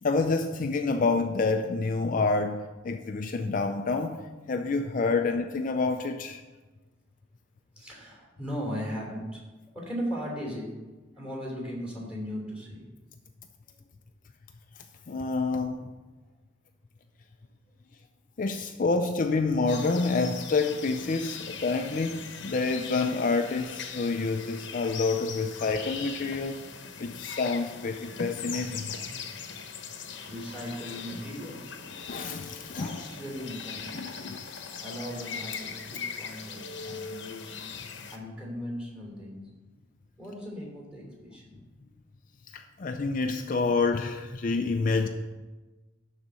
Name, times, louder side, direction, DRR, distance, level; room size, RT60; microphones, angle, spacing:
voice 1, 0.0-4.2 4.5-6.4 15.1-15.9 18.4-26.6 27.0-28.9 31.9-33.1 33.9-34.4 42.5-45.1, left 3 dB, 45° left, 5 dB, 0.4 m, -28 dB
voice 2, 7.7-9.4 9.7-10.7 11.1-12.9 13.7-13.8 27.2-27.3 30.1-31.7 32.7-34.4 34.8-39.4 40.2-41.6, equal, 5° right, -3 dB, 3.0 m, -38 dB
sound 1, 19.7-38.2, left 6 dB, 65° left, 0.9 m, -40 dB
11.5 x 4.1 x 6.2 m, 1.2 s
head